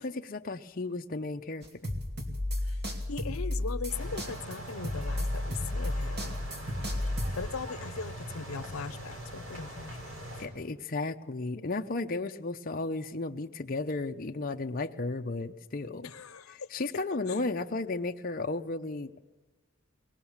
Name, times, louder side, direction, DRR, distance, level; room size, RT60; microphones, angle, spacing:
voice 1, 0.0-1.9 10.4-16.1 16.5-19.1, left 3 dB, 40° left, 5 dB, 0.7 m, -34 dB
sound 1, 1.6-7.5, left 1 dB, 50° right, 2.8 m, -33 dB
voice 2, 3.1-6.4 7.3-10.1 16.0-16.7 17.3-17.4, left 5 dB, 85° left, 13 dB, 0.8 m, -39 dB
sound 2, 3.9-10.5, right 1 dB, 70° right, 4.1 m, -42 dB
22.0 x 18.5 x 7.2 m, 1.2 s
head